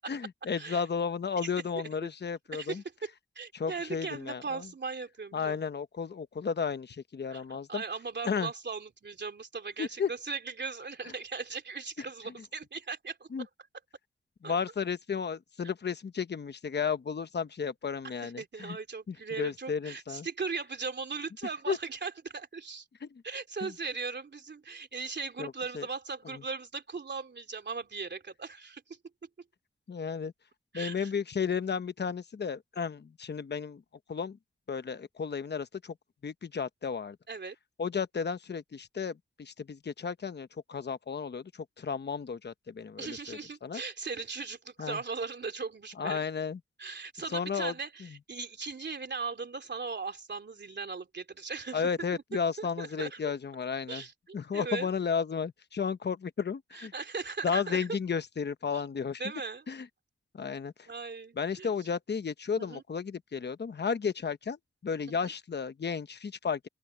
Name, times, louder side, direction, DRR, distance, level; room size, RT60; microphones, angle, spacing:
voice 1, 0.1-2.8 3.5-4.6 5.3-7.8 8.2-8.5 9.8-10.1 13.3-13.4 14.4-18.8 19.1-20.3 21.7-21.8 23.6-23.7 25.4-25.9 29.9-30.3 30.7-33.8 34.1-34.4 34.7-35.9 36.2-37.2 37.8-39.1 39.4-41.4 41.8-43.8 44.8-45.0 46.0-46.6 47.3-47.7 51.7-54.0 54.3-56.9 57.4-59.2 59.7-59.8 60.4-60.7 61.4-64.6 64.8-66.7, left 6 dB, 55° left, 1.0 m, -33 dB
voice 2, 2.5-3.1 3.3-5.6 7.3-13.5 14.4-14.6 18.0-22.9 23.2-29.0 30.7-31.1 37.3-37.5 43.0-46.2 46.8-52.2 52.6-53.3 53.9-54.9 56.7-57.9 58.7-58.8 59.2-59.6 60.9-61.7 62.5-62.8 65.1-65.3, right 4 dB, 55° right, 3.1 m, -38 dB
open air
cardioid pair, 55°, 21 cm